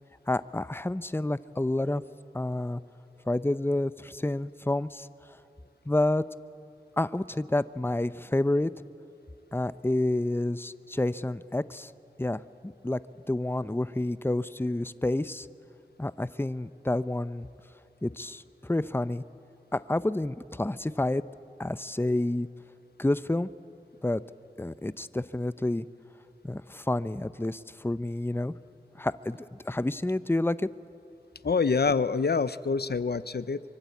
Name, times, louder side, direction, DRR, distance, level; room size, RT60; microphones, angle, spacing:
voice 1, 0.3-2.0 2.3-2.8 3.3-5.1 5.9-6.2 7.0-8.7 9.5-11.9 12.2-13.0 13.3-15.5 16.0-17.5 18.0-19.2 19.7-21.2 21.6-22.5 23.0-23.5 24.0-24.2 24.6-25.9 26.4-28.5 29.0-30.7, left 1 dB, 15° left, 15 dB, 0.6 m, -29 dB
voice 2, 31.4-33.6, left 4 dB, 85° left, 16 dB, 0.6 m, -26 dB
24.0 x 24.0 x 8.4 m, 2.7 s
wide cardioid pair, 40°, 16 cm